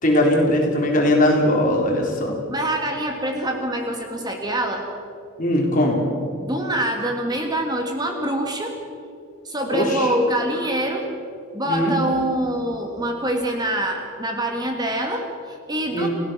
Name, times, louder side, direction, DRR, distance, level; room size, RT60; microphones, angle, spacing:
voice 1, 0.0-2.4 5.4-6.0 9.7-10.1 11.7-12.0 15.9-16.1, left 1 dB, 40° left, 0 dB, 4.2 m, -19 dB
voice 2, 2.5-4.9 6.4-8.8 9.4-11.0 11.5-16.1, right 1 dB, 20° right, 3 dB, 1.8 m, -25 dB
29.5 x 16.5 x 6.5 m, 2.5 s
head